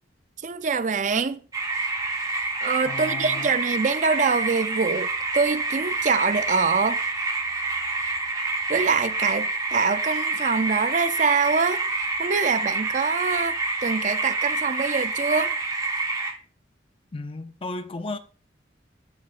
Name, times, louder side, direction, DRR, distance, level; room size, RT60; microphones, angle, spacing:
voice 1, 0.4-1.4 2.6-7.0 8.7-11.8 12.2-15.5, right 5 dB, 40° right, 0.5 m, -24 dB
sound 1, 1.5-16.3, right 3 dB, 20° right, 1.0 m, -27 dB
voice 2, 2.9-3.5 17.1-18.2, left 3 dB, 30° left, 0.5 m, -34 dB
12.5 x 4.9 x 2.5 m
head